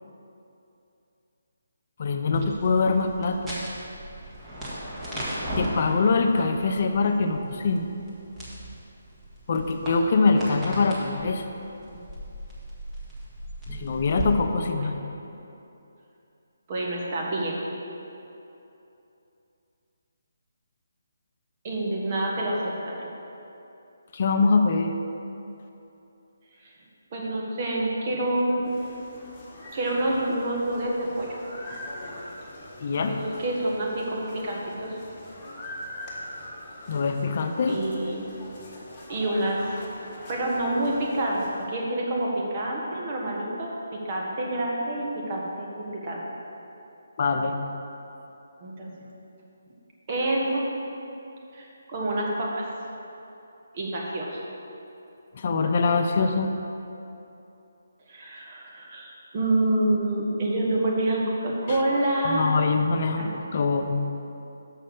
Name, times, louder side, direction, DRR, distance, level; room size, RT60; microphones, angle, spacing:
voice 1, 2.0-3.5 5.6-7.9 9.5-11.5 13.8-14.9 24.1-25.0 32.8-33.2 36.9-37.8 47.2-47.6 55.3-56.5 61.7-61.8 62.2-64.0, left 4 dB, 45° left, 5 dB, 0.6 m, -23 dB
sound 1, 2.3-14.2, equal, 10° right, 1.6 m, -37 dB
voice 2, 14.5-14.9 16.7-17.6 21.6-23.0 26.6-26.7 27.1-28.7 29.7-31.3 33.1-35.0 37.7-38.2 39.1-39.8 40.3-41.4 41.7-46.2 48.6-48.9 50.1-50.6 51.5-52.7 53.7-54.5 58.1-62.5 63.2-63.3, right 1 dB, 35° right, -3 dB, 1.5 m, -27 dB
sound 2, 28.6-41.7, left 1 dB, 20° left, 1.5 m, -43 dB
6.6 x 5.4 x 6.6 m, 2.9 s
figure-of-eight pair, 150°, 0 cm